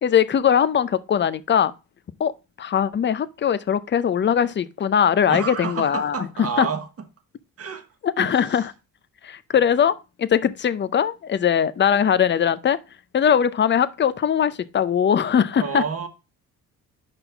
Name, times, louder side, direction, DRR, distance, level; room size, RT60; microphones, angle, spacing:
voice 1, 0.0-1.7 2.2-2.3 2.6-6.7 8.0-8.7 9.2-12.8 13.1-15.8, left 8 dB, 35° left, 0.5 m, -21 dB
voice 2, 5.3-6.9 7.6-7.8 8.2-8.4 15.6-16.1, right 6 dB, 45° right, 1.2 m, -29 dB
5.4 x 4.2 x 5.6 m
cardioid pair, 90°, 34 cm